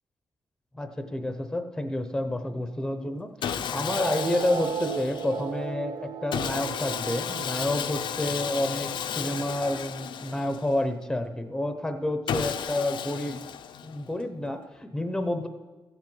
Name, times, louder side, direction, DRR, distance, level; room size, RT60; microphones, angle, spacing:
voice 1, 0.7-13.5 13.8-15.5, left 1 dB, 5° left, 8 dB, 0.7 m, -29 dB
Sawing, 3.4-5.5 6.3-10.8 12.3-14.1, left 8 dB, 70° left, 0.6 m, -33 dB
sound 1, 3.9-10.8, right 8 dB, 55° right, 0.4 m, -37 dB
14.5 x 7.5 x 7.9 m, 1.2 s
wide cardioid pair, 180°, 8 cm